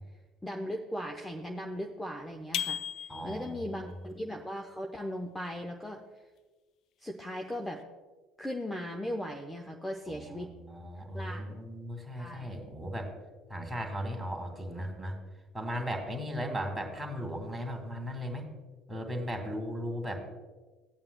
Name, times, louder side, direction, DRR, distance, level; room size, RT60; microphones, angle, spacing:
voice 1, 0.4-2.8 3.2-6.0 7.0-7.8 8.4-10.5 11.1-11.6 12.1-12.6, equal, 10° left, 2 dB, 0.8 m, -38 dB
sound 1, 2.5-3.6, left 10 dB, 55° left, 0.3 m, -35 dB
voice 2, 3.1-3.7 10.3-13.1 13.5-15.2 15.5-18.5 18.9-20.2, equal, 10° right, 2 dB, 2.2 m, -37 dB
17.0 x 8.7 x 2.2 m, 1.3 s
figure-of-eight pair, 60°, 0 cm